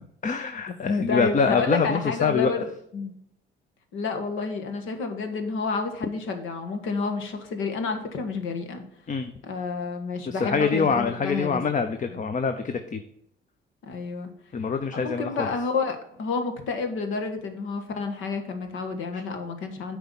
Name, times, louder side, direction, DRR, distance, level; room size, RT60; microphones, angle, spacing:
voice 1, 0.2-2.5 9.1-9.3 10.3-13.0 14.5-15.5 19.1-19.2, left 5 dB, 40° left, 8 dB, 0.8 m, -25 dB
voice 2, 1.1-3.2 3.9-8.8 9.4-11.6 12.1-12.2 13.8-14.3 14.9-20.0, left 4 dB, 90° left, 6 dB, 1.5 m, -30 dB
8.0 x 4.6 x 7.1 m, 0.71 s
cardioid pair, 90°, 20 cm